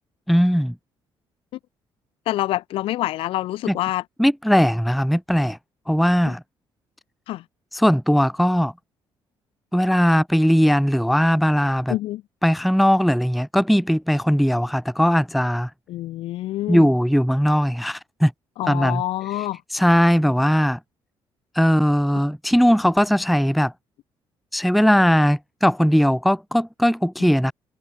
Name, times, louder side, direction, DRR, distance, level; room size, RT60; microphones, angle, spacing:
voice 1, 0.3-0.8 3.7-3.8 4.2-5.6 5.9-6.4 7.7-8.7 9.7-11.9 12.4-15.7 16.7-18.3 18.7-19.0 19.7-20.8 21.6-23.7 24.5-27.5, equal, ahead, 0.3 m, -19 dB
voice 2, 2.3-4.0 6.3-6.4 7.3-7.4 11.9-12.2 15.9-16.9 18.6-19.6 27.2-27.3, left 15 dB, 90° left, 2.7 m, -26 dB
cardioid pair, 155°, 9 cm